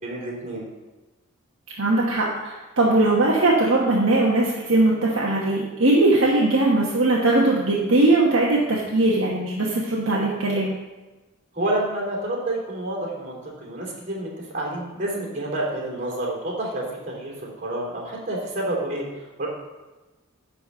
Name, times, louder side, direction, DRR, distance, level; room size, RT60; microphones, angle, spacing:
voice 1, 0.0-0.7 11.5-19.5, right 1 dB, 35° right, -3 dB, 3.3 m, -29 dB
voice 2, 1.8-10.7, right 2 dB, 65° right, -4 dB, 1.3 m, -20 dB
11.0 x 4.2 x 6.8 m, 1.1 s
head